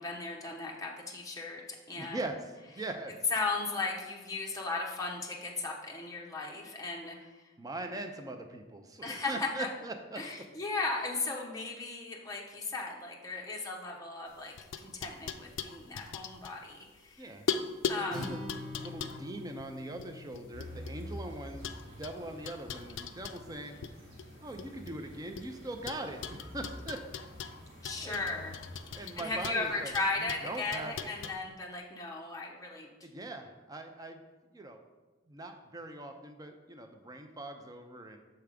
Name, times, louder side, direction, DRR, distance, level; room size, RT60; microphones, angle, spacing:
voice 1, 0.0-1.6 1.9-2.2 3.3-7.4 9.0-9.7 10.2-17.3 17.9-18.4 27.8-28.5 28.9-32.9, left 3 dB, 20° left, -1 dB, 0.9 m, -36 dB
voice 2, 2.0-2.4 2.8-3.1 6.6-6.7 7.6-10.2 17.2-17.5 17.9-18.4 18.7-23.8 24.4-27.0 28.0-28.2 28.9-29.9 30.2-31.1 33.0-34.2 34.5-34.8 35.3-38.2, right 2 dB, 20° right, 5 dB, 0.5 m, -41 dB
sound 1, 14.3-17.1 17.5-21.2 21.6-23.9 24.2-25.5 25.9-31.3, left 6 dB, 65° left, 0.4 m, -40 dB
Acoustic guitar, 18.1-22.3, left 2 dB, ahead, 2.2 m, -45 dB
sound 2, 20.5-29.7, equal, 70° right, 1.3 m, -48 dB
6.8 x 3.4 x 5.0 m, 1.2 s
head